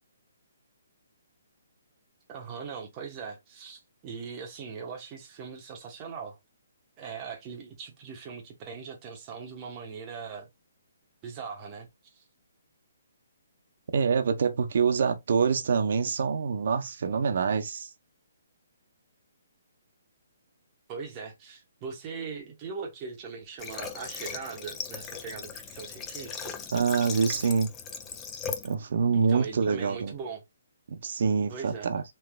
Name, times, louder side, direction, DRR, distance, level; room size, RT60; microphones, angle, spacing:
voice 1, 2.3-6.4 7.0-10.5 11.2-12.2 20.9-26.6 29.1-30.4 31.5-31.9, right 5 dB, 20° right, 0.9 m, -40 dB
voice 2, 13.9-17.9 26.7-27.7 28.6-30.1 30.9-32.0, right 5 dB, 55° right, 0.7 m, -26 dB
Water / Water tap faucet, 23.6-28.7, left 6 dB, 15° left, 0.4 m, -38 dB
3.1 x 3.1 x 2.2 m
hypercardioid pair, 170°, 0 cm